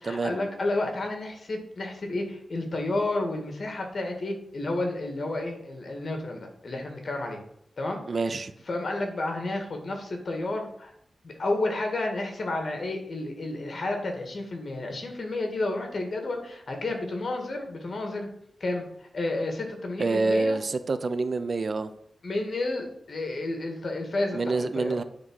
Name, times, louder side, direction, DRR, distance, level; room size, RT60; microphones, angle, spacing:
voice 1, 0.0-7.4 7.8-8.0 8.7-10.9 11.2-18.3 18.6-20.6 22.2-25.0, left 2 dB, 55° left, 3 dB, 2.1 m, -31 dB
voice 2, 8.1-8.5 20.0-21.9 24.3-25.0, right 3 dB, 50° right, 11 dB, 0.6 m, -27 dB
9.6 x 3.8 x 6.3 m, 0.71 s
wide cardioid pair, 100°, 0 cm